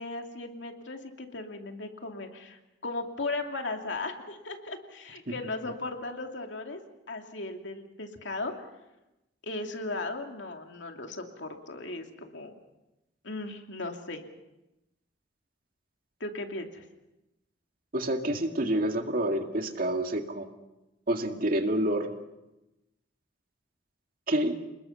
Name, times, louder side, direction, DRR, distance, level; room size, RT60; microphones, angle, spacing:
voice 1, 0.0-6.8 7.1-8.5 9.4-12.5 13.2-14.2 16.2-16.8, left 2 dB, 80° left, 3 dB, 2.6 m, -37 dB
voice 2, 17.9-20.5 21.1-22.1 24.3-24.6, right 1 dB, 50° right, 4 dB, 2.1 m, -28 dB
29.0 x 20.0 x 5.7 m, 0.96 s
head